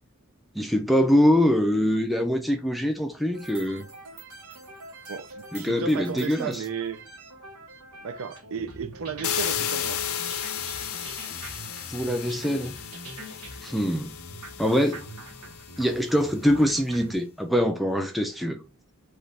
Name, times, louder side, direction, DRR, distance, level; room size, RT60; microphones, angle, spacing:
voice 1, 0.5-3.8 5.5-6.6 11.9-12.7 13.6-14.1 14.6-15.0 15.8-18.6, equal, ahead, 0.4 m, -23 dB
sound 1, 3.3-17.2, right 2 dB, 85° right, 1.1 m, -44 dB
voice 2, 5.1-7.0 8.0-10.0 14.6-14.7, right 6 dB, 65° right, 0.4 m, -34 dB
sound 2, 9.2-16.1, left 9 dB, 75° left, 0.5 m, -33 dB
3.3 x 2.4 x 4.0 m
head